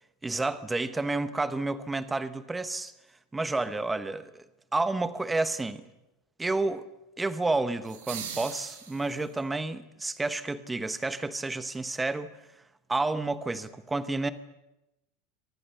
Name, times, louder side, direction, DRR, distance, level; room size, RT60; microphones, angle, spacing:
voice 1, 0.2-2.9 3.3-4.4 4.7-5.8 6.4-6.8 7.2-12.3 12.9-14.3, right 2 dB, 5° right, 12 dB, 1.0 m, -30 dB
sound 1, 7.8-9.4, right 8 dB, 70° right, 7.8 m, -40 dB
30.0 x 24.5 x 7.0 m, 0.92 s
supercardioid pair, 180°, 0 cm